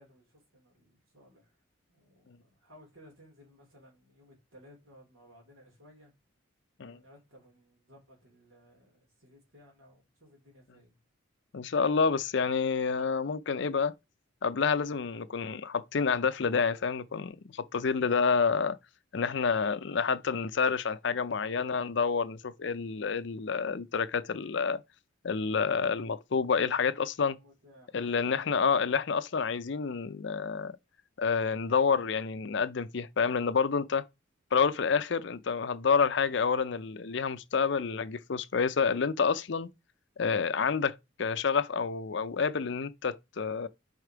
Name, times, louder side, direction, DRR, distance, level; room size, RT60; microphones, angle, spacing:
voice 1, 0.0-1.5 1.9-6.1 6.9-11.0 27.3-28.4, equal, 85° right, 3.5 m, -58 dB
voice 2, 11.5-13.9 14.4-18.8 19.1-24.8 25.2-27.4 27.9-30.7 31.2-34.1 34.5-39.7 40.2-43.7, left 5 dB, 60° left, 0.5 m, -28 dB
5.0 x 4.5 x 4.6 m
head